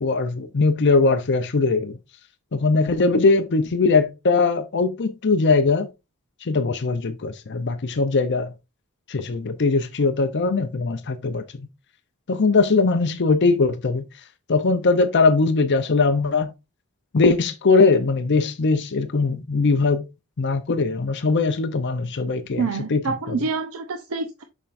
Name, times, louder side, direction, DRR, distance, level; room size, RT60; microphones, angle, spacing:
voice 1, 0.0-2.0 2.5-5.9 6.4-8.5 9.1-11.7 12.3-14.0 14.5-16.5 17.1-20.0 20.4-23.0 23.3-23.4, left 3 dB, 55° left, 0.6 m, -20 dB
voice 2, 22.6-24.4, right 4 dB, 70° right, 0.7 m, -27 dB
7.3 x 5.8 x 2.5 m
head